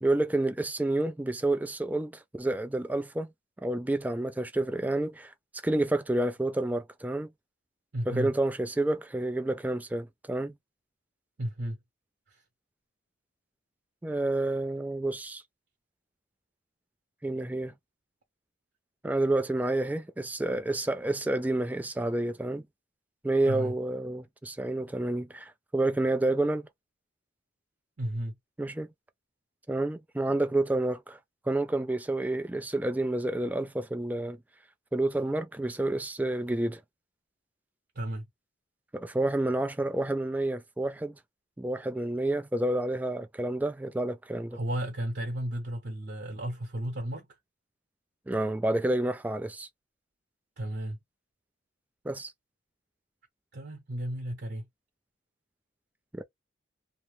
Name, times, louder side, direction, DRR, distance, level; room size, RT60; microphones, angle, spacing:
voice 1, 0.0-3.3 3.6-5.3 5.6-7.3 8.1-10.6 14.0-15.4 17.2-17.7 19.0-22.7 23.2-26.7 28.6-28.9 29.7-31.2 31.5-34.4 34.9-36.8 38.9-41.2 41.6-44.6 48.3-49.7 52.0-52.3 56.1-56.2, right 2 dB, 10° right, 0.3 m, -29 dB
voice 2, 7.9-8.3 11.4-11.8 12.3-12.4 23.4-23.7 28.0-28.3 37.9-38.3 44.5-47.3 50.6-51.0 53.5-54.6, right 1 dB, 60° right, 0.9 m, -33 dB
2.7 x 2.0 x 3.2 m
head